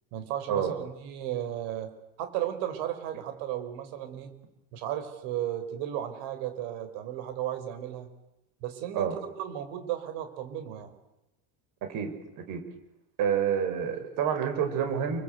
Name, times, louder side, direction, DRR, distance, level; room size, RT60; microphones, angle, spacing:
voice 1, 0.1-1.9 2.2-4.3 4.7-8.1 8.6-10.9, right 11 dB, 60° right, 8 dB, 5.7 m, -34 dB
voice 2, 13.2-15.2, right 8 dB, 40° right, 7 dB, 6.1 m, -28 dB
28.5 x 25.0 x 8.2 m, 0.91 s
cardioid pair, 180°, 47 cm